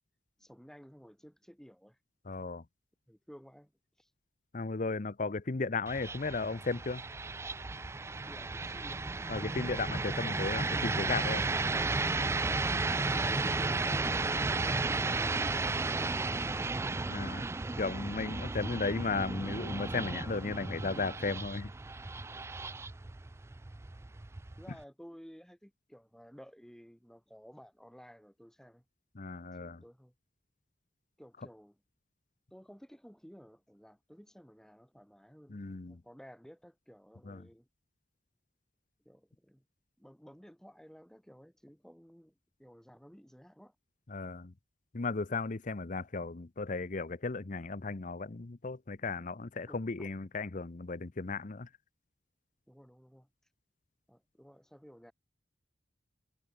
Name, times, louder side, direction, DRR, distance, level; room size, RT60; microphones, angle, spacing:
voice 1, 0.4-2.0 3.1-3.7 4.0-4.1 8.2-9.0 12.6-16.5 23.0-23.2 24.6-28.8 29.6-30.1 31.2-31.8 32.5-37.7 39.0-39.6 40.0-43.7 49.7-50.1 52.7-53.3 54.1-55.1, equal, 5° left, 6.5 m, -54 dB
voice 2, 2.3-2.6 4.5-7.0 9.3-11.5 17.1-17.4 17.8-21.7 29.2-29.8 35.5-36.0 37.3-37.4 44.1-44.5 44.9-51.7, left 3 dB, 45° left, 0.7 m, -35 dB
sound 1, 5.9-24.8, right 3 dB, 15° right, 0.3 m, -34 dB
head